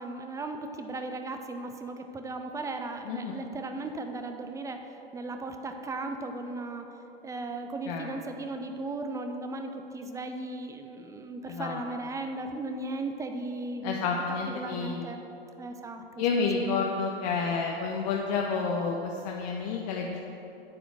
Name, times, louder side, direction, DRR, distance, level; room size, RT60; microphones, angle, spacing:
voice 1, 0.0-6.9 7.2-14.0 14.5-15.2 15.6-16.0 16.3-16.5, right 2 dB, 10° right, 6 dB, 0.5 m, -36 dB
voice 2, 3.0-3.4 7.9-8.2 11.5-11.8 13.8-15.1 16.2-20.2, left 5 dB, 45° left, 0 dB, 0.8 m, -30 dB
8.6 x 5.0 x 7.7 m, 2.9 s
figure-of-eight pair, 100°, 30 cm